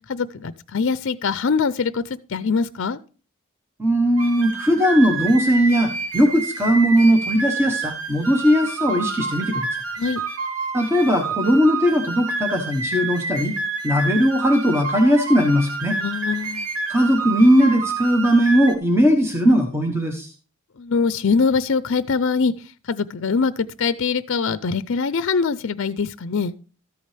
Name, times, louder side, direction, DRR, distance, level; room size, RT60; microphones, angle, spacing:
voice 1, 0.1-2.0 2.3-3.0 10.0-10.2 15.8-16.7 20.8-22.5 22.9-23.5 23.8-26.5, left 5 dB, 60° left, 0.5 m, -23 dB
voice 2, 3.8-9.7 10.7-13.5 13.8-16.0 16.9-20.3, equal, 10° right, 1.2 m, -18 dB
sound 1, 4.2-18.7, right 3 dB, 75° right, 1.5 m, -28 dB
13.5 x 8.6 x 3.3 m
head